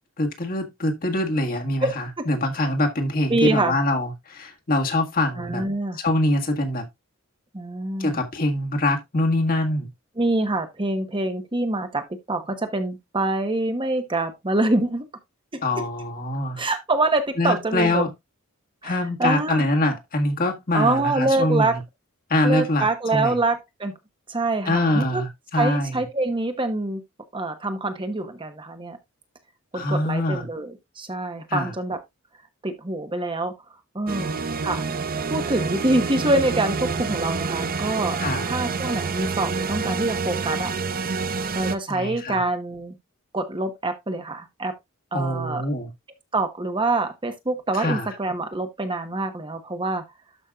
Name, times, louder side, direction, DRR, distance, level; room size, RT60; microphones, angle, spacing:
voice 1, 0.2-5.6 6.0-6.9 8.0-9.9 15.6-16.6 17.4-18.1 18.8-21.8 22.3-23.4 24.6-26.0 29.7-30.5 31.5-31.7 38.2-38.5 41.9-42.4 45.1-45.9 47.8-48.1, left 1 dB, 45° left, 1.7 m, -24 dB
voice 2, 3.3-3.8 5.4-6.0 7.5-8.2 10.2-15.0 15.5-15.6 16.6-18.1 18.8-19.6 20.7-21.8 22.4-23.9 24.3-25.2 25.5-27.0 27.3-29.0 29.7-32.0 32.6-33.5 33.9-34.8 35.3-38.2 38.5-41.0 41.5-42.9 43.3-44.7 45.1-45.6 46.3-50.0, right 2 dB, 25° right, 1.1 m, -25 dB
sound 1, 34.1-41.8, right 4 dB, 45° right, 0.7 m, -27 dB
12.5 x 5.4 x 2.4 m
head